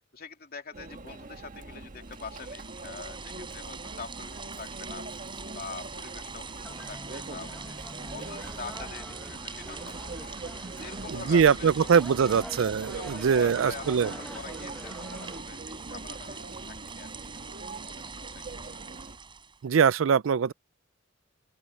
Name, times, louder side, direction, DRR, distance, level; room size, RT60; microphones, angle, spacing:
voice 1, 0.1-5.3 5.5-7.8 8.1-10.3 10.6-12.4 12.9-17.1 17.6-18.6, left 5 dB, 50° left, 2.7 m, -45 dB
Conversation / Chatter / Crowd, 0.7-19.2, right 2 dB, 40° right, 1.5 m, -43 dB
sound 1, 2.0-19.6, right 5 dB, 25° right, 7.2 m, -43 dB
sound 2, 6.6-15.4, left 1 dB, 5° left, 0.9 m, -45 dB
voice 2, 11.1-14.1 19.6-20.5, right 6 dB, 75° right, 0.4 m, -22 dB
open air
head